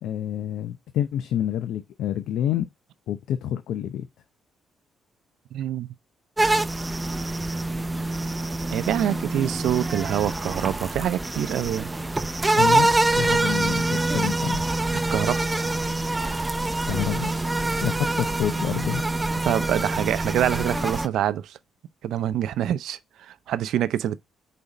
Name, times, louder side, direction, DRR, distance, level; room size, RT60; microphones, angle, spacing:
voice 1, 0.0-2.7 3.1-4.1 12.6-12.9 13.2-14.6 16.9-17.4 17.8-19.0, left 10 dB, 80° left, 0.6 m, -28 dB
voice 2, 5.5-5.9 8.7-11.9 15.1-15.4 19.4-21.6 22.0-24.2, right 11 dB, 80° right, 0.5 m, -26 dB
sound 1, 6.4-21.1, right 2 dB, 15° right, 0.6 m, -25 dB
4.9 x 4.3 x 5.2 m
cardioid pair, 90°, 0 cm